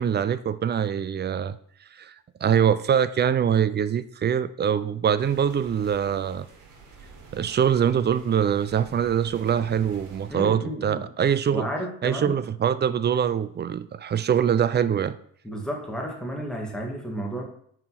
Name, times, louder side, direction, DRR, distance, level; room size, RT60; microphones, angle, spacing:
voice 1, 0.0-1.6 2.0-2.1 2.4-6.5 7.3-11.7 12.0-15.2, right 8 dB, 35° right, 15 dB, 0.5 m, -23 dB
sound 1, 5.2-10.4, right 4 dB, 75° right, 1.9 m, -47 dB
voice 2, 10.3-11.1 11.5-12.4 15.4-17.4, equal, ahead, 0 dB, 1.8 m, -32 dB
5.1 x 4.9 x 5.7 m, 0.65 s
cardioid pair, 90°, 30 cm